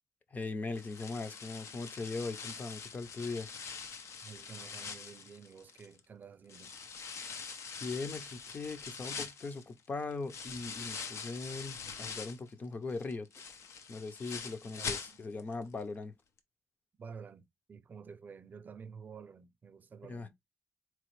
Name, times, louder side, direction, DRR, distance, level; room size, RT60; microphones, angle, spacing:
voice 1, 0.3-3.5 7.8-13.3 13.9-16.1 20.1-20.3, left 3 dB, 35° left, 0.6 m, -40 dB
sound 1, 0.7-6.0 6.5-12.5 12.9-15.5 15.8-15.9 16.4-16.5, left 5 dB, 85° left, 0.6 m, -44 dB
voice 2, 4.2-6.7 14.8-15.2 17.0-20.3, right 6 dB, 40° right, 0.4 m, -50 dB
4.3 x 3.0 x 3.0 m
wide cardioid pair, 175°, 5 cm